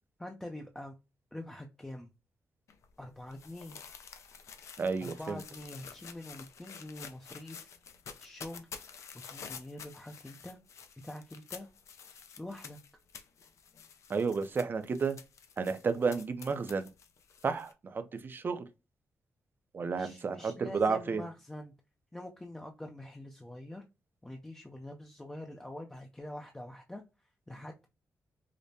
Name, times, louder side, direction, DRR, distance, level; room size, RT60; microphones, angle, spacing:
voice 1, 0.2-0.9 1.3-2.1 3.0-3.8 5.0-7.7 8.2-8.7 9.3-10.6 11.0-11.7 12.4-12.8 19.8-21.7 22.1-23.8 24.2-27.0 27.5-27.9, left 1 dB, 10° left, 0.5 m, -45 dB
sound 1, 2.7-17.7, left 6 dB, 65° left, 0.5 m, -50 dB
voice 2, 4.8-5.4 14.1-15.2 15.6-16.9 17.4-18.6 19.7-21.2, right 5 dB, 40° right, 0.5 m, -32 dB
5.0 x 2.1 x 2.7 m
cardioid pair, 105°, 5 cm